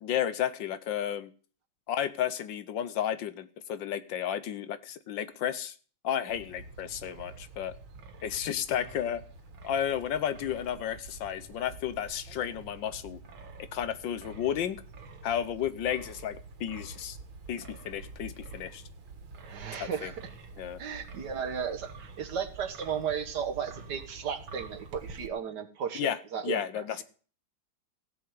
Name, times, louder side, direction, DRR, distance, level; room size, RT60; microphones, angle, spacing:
voice 1, 0.0-1.3 1.9-5.7 6.0-7.7 8.2-9.2 9.6-13.2 13.6-14.8 15.2-17.2 17.5-18.8 19.8-20.1 20.6-20.8 25.9-26.2 26.4-27.0, left 9 dB, 70° left, 13 dB, 1.5 m, -32 dB
Wind, 6.3-25.3, right 3 dB, 90° right, 2.3 m, -47 dB
voice 2, 19.4-20.3 20.8-27.0, right 7 dB, 60° right, 7 dB, 1.7 m, -35 dB
16.5 x 5.6 x 7.8 m, 0.41 s
omnidirectional pair, 2.2 m